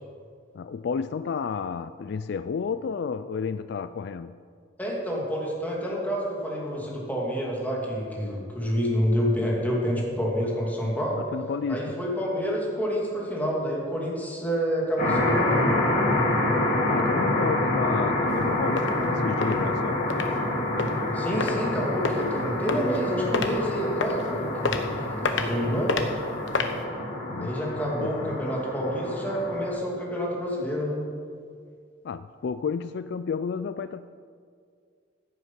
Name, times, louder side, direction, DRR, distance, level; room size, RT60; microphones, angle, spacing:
voice 1, 0.5-4.3 11.3-11.9 16.9-20.1 27.3-27.5 28.0-28.3 32.0-34.1, left 5 dB, 65° left, 13 dB, 0.3 m, -31 dB
voice 2, 4.8-11.2 11.7-15.7 21.1-25.9 27.4-31.0, equal, 10° left, -3 dB, 2.8 m, -28 dB
sound 1, 15.0-29.7, left 1 dB, 45° left, 2.6 m, -27 dB
sound 2, 18.3-18.4 18.8-18.9 19.4-19.6 20.1-20.3 20.8-20.9 21.4-21.5 22.0-22.2 22.7-23.0 23.3-23.5 24.0-24.2 24.6-24.8 25.2-25.5 25.9-26.0 26.5-26.7, left 4 dB, 90° left, 1.1 m, -27 dB
15.0 x 8.4 x 5.9 m, 2.1 s
head